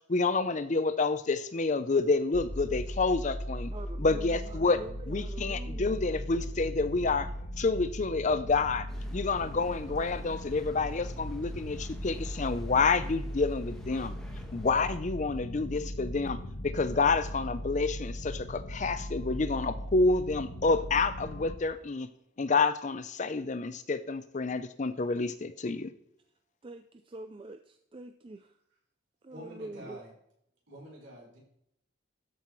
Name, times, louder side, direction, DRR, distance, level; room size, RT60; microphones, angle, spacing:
voice 1, 0.1-3.7 4.0-4.8 5.1-7.3 7.6-14.1 14.5-22.1 22.4-25.9, left 3 dB, 35° left, 12 dB, 0.5 m, -28 dB
sound 1, 2.3-21.6, equal, 65° left, 1.2 m, -38 dB
voice 2, 3.7-6.0 26.6-28.6 29.2-30.0, right 2 dB, 25° right, 7 dB, 0.4 m, -45 dB
sound 2, 8.9-14.9, equal, 5° left, 1.3 m, -51 dB
voice 3, 29.3-30.1 30.7-31.4, equal, 65° right, -3 dB, 4.4 m, -47 dB
13.0 x 5.7 x 4.5 m, 0.72 s
head